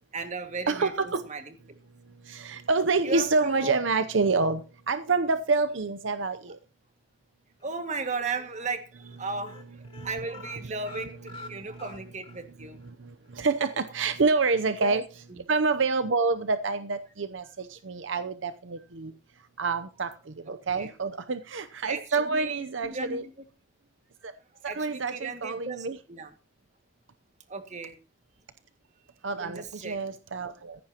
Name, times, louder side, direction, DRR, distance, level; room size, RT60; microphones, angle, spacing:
voice 1, 0.1-1.5 3.0-3.8 7.6-12.8 14.8-15.0 15.4-15.5 20.5-20.9 21.9-23.2 24.7-26.3 27.5-28.0 29.4-30.0, right 4 dB, 40° right, 6 dB, 2.0 m, -36 dB
voice 2, 0.7-1.2 2.3-4.6 4.9-6.6 10.0-10.3 11.0-11.2 13.3-15.0 15.5-19.1 19.6-20.1 20.5-23.2 24.6-26.0 29.2-30.8, right 4 dB, 70° right, 11 dB, 0.7 m, -27 dB
sound 1, 7.6-8.2 8.5-8.7 9.0-9.2 9.4-12.4 12.8-12.9 13.3-13.4, left 4 dB, 30° left, 2.9 m, -47 dB
16.5 x 14.5 x 3.0 m, 0.33 s
head